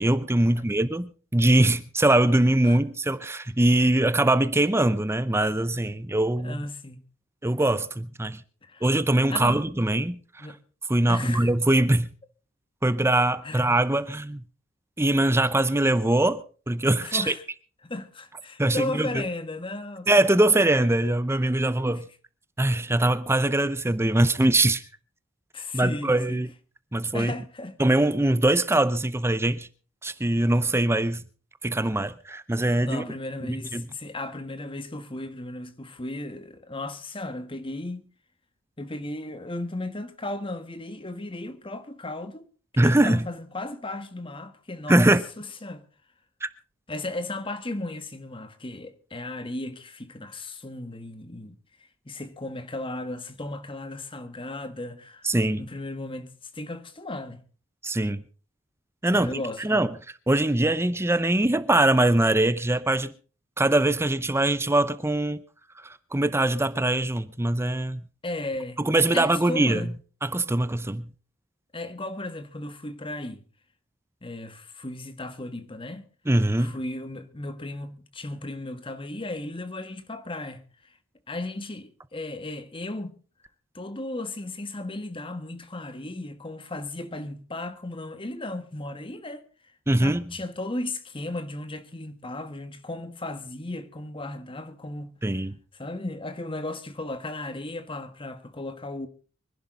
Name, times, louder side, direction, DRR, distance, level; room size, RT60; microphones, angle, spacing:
voice 1, 0.0-6.6 7.4-8.4 8.8-10.2 10.9-12.1 12.8-14.4 15.0-17.3 18.6-19.2 20.1-22.1 22.6-24.8 25.7-26.5 26.9-27.3 27.8-29.7 30.0-31.2 31.6-33.0 33.5-33.9 42.8-43.3 44.9-45.2 46.4-46.5 55.2-55.7 57.8-58.2 59.0-59.9 60.3-63.1 63.6-65.4 65.8-68.0 68.8-69.9 70.2-71.1 76.3-76.8 89.9-90.2 95.2-95.6, right 1 dB, 10° right, 0.7 m, -22 dB
voice 2, 6.4-7.0 8.6-8.8 9.3-9.6 10.4-10.6 11.1-11.5 13.4-13.7 17.0-17.4 17.8-20.5 21.9-22.0 25.5-26.5 27.1-27.8 32.8-38.0 38.8-42.5 42.7-45.1 45.4-45.8 46.9-51.6 52.0-57.4 59.1-59.9 68.2-68.8 69.1-69.9 71.7-73.4 74.2-76.1 76.6-80.6 81.3-83.1 83.7-89.5 89.9-95.4 95.7-99.1, left 2 dB, 25° left, 1.4 m, -35 dB
24.5 x 11.5 x 3.8 m
head